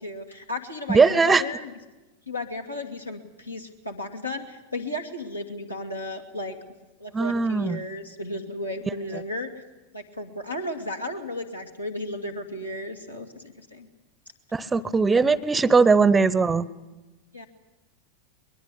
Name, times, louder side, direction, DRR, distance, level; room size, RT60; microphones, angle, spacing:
voice 1, 0.0-1.7 2.3-6.6 7.0-9.5 9.9-13.9 17.3-17.5, left 1 dB, 85° left, 4 dB, 2.5 m, -34 dB
voice 2, 0.9-1.4 7.1-7.8 14.5-16.7, right 4 dB, 15° right, 20 dB, 0.7 m, -19 dB
22.0 x 21.5 x 8.4 m, 1.1 s
figure-of-eight pair, 90°, 0 cm